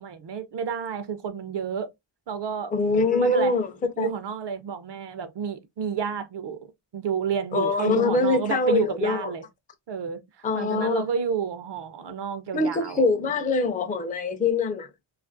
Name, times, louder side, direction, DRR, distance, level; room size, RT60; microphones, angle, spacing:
voice 1, 0.0-1.9 2.3-3.5 4.0-6.6 6.9-9.4 9.9-10.2 10.5-13.0, right 7 dB, 60° right, 0.5 m, -30 dB
voice 2, 2.7-3.7 4.0-4.1 7.5-9.3 10.4-11.1 12.5-14.9, left 3 dB, 20° left, 0.3 m, -24 dB
2.5 x 2.4 x 2.4 m
wide cardioid pair, 125°, 49 cm